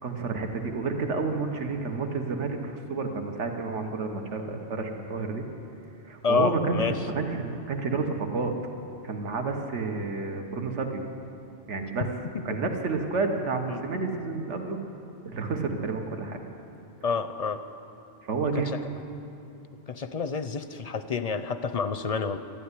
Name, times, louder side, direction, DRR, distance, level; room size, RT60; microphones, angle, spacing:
voice 1, 0.0-5.4 6.0-8.5 9.0-11.0 11.7-12.1 12.4-14.8 15.2-16.4 18.3-18.7, right 4 dB, 90° right, 4 dB, 1.5 m, -30 dB
voice 2, 6.2-7.0 12.0-12.1 13.7-13.8 17.0-17.6 18.5-18.7 19.9-22.4, left 5 dB, 50° left, 10 dB, 0.5 m, -28 dB
12.5 x 12.0 x 9.6 m, 2.7 s
omnidirectional pair, 1.2 m